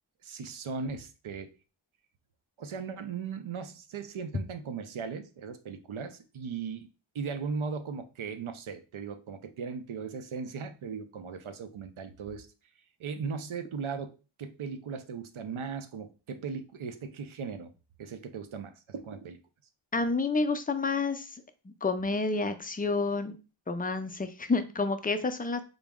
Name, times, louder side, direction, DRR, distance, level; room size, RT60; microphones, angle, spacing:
voice 1, 0.2-1.5 2.6-12.5 13.0-17.7 18.0-19.4, right 5 dB, 75° right, 0.6 m, -38 dB
voice 2, 19.9-21.4 21.8-23.4 23.7-25.6, left 3 dB, 20° left, 0.3 m, -29 dB
3.8 x 2.0 x 3.5 m
wide cardioid pair, 45°, 49 cm